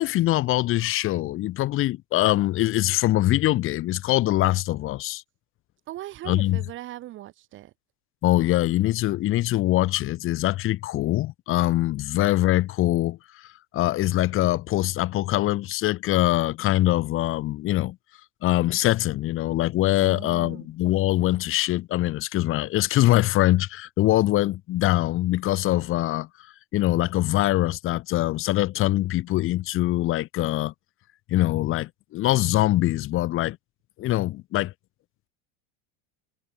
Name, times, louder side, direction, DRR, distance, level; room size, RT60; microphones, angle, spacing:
voice 1, 0.0-5.2 6.2-6.6 8.2-18.0 18.4-26.3 26.7-30.7 31.3-33.6 34.0-34.7, left 16 dB, 40° left, 1.2 m, -23 dB
voice 2, 5.9-7.7 20.0-20.7, right 15 dB, 40° right, 0.9 m, -39 dB
cardioid pair, 145°, 32 cm